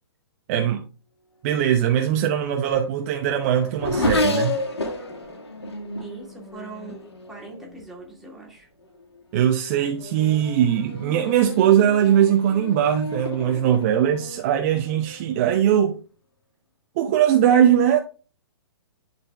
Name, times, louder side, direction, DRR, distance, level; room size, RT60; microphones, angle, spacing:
voice 1, 0.5-0.8 1.4-4.6 9.3-15.9 17.0-18.0, right 10 dB, 35° right, 0.8 m, -20 dB
Race car auto racing / Accelerating revving vroom, 2.1-8.0 8.8-9.2 9.6-15.5, left 1 dB, 70° left, 2.3 m, -31 dB
voice 2, 6.0-8.7, right 3 dB, ahead, 2.3 m, -41 dB
11.0 x 4.3 x 3.4 m
figure-of-eight pair, 120°, 14 cm